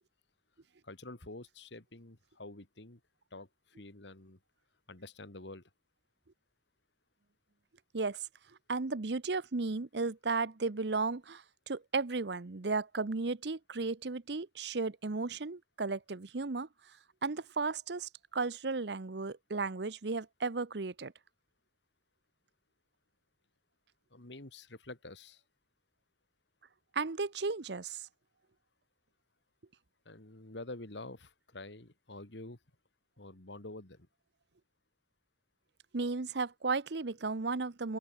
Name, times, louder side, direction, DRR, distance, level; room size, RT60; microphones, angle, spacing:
voice 1, 0.8-3.0 3.3-4.4 4.9-5.7 24.1-25.4 30.0-32.6 33.2-34.1, left 2 dB, 75° left, 2.6 m, -48 dB
voice 2, 8.7-16.7 17.2-21.1 26.9-28.1 35.9-38.0, right 3 dB, 65° right, 0.8 m, -34 dB
open air
head